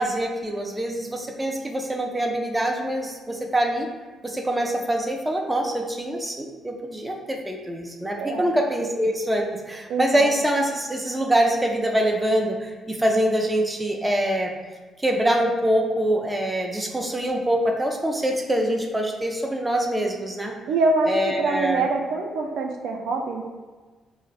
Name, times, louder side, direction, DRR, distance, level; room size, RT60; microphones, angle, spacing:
voice 1, 0.0-3.9 4.2-14.5 15.0-20.5 21.0-21.9, right 1 dB, 10° right, 1 dB, 0.4 m, -24 dB
voice 2, 8.2-8.5 9.9-10.3 20.7-21.1 21.4-23.4, right 3 dB, 80° right, 1 dB, 0.3 m, -24 dB
2.4 x 2.0 x 3.9 m, 1.3 s
cardioid pair, 90°, 0 cm